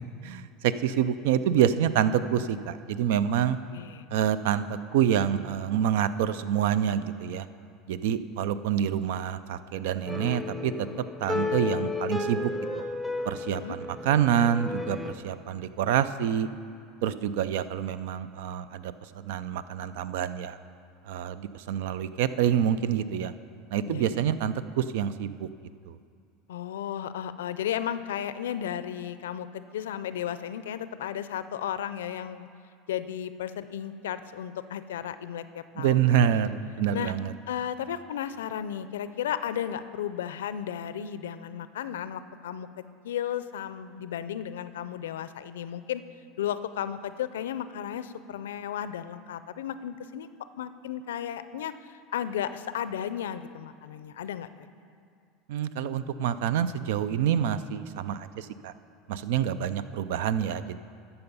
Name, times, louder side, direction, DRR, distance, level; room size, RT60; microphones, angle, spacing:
voice 1, 0.2-3.6 4.1-4.6 4.9-7.5 7.9-10.9 11.2-12.8 13.3-16.5 17.0-18.9 19.3-20.6 21.1-23.3 23.7-25.5 25.9-26.0 35.8-37.3 55.5-58.7 59.1-60.8, right 9 dB, 75° right, 14 dB, 0.4 m, -27 dB
voice 2, 3.7-4.1 13.5-13.8 23.8-24.2 26.5-32.5 32.9-36.4 36.9-37.1 37.5-42.7 43.0-46.0 46.4-50.3 50.6-51.7 52.1-54.7, left 10 dB, 90° left, 13 dB, 0.4 m, -34 dB
sound 1, 10.1-15.1, left 3 dB, 5° right, 0.8 m, -33 dB
12.0 x 7.0 x 5.4 m, 2.3 s
supercardioid pair, 105°, 0 cm